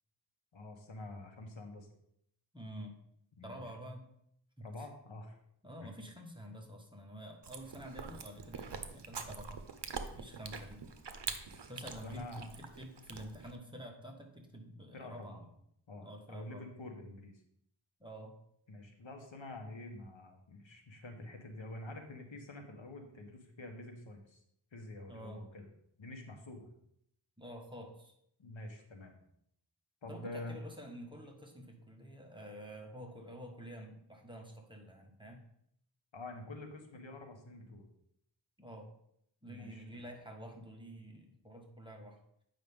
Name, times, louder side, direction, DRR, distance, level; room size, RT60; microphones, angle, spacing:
voice 1, 0.5-1.9 3.4-3.6 4.6-5.4 5.8-5.9 12.0-12.6 14.9-15.4 15.9-17.4 18.7-24.4 24.7-25.7 26.0-26.7 28.4-29.2 30.0-30.6 36.1-37.9 39.4-40.1, left 2 dB, 75° left, 4 dB, 1.2 m, -47 dB
voice 2, 2.5-3.0 3.4-4.1 4.6-4.9 5.6-9.6 10.1-10.8 11.7-15.5 16.0-16.6 18.0-18.4 25.1-25.4 27.4-28.1 30.1-35.4 38.6-38.9 39.4-42.2, equal, 10° right, 1 dB, 1.3 m, -49 dB
Chewing mastication, 7.4-13.6, right 5 dB, 60° right, 0.8 m, -45 dB
8.8 x 5.5 x 3.6 m, 0.72 s
wide cardioid pair, 70°, 46 cm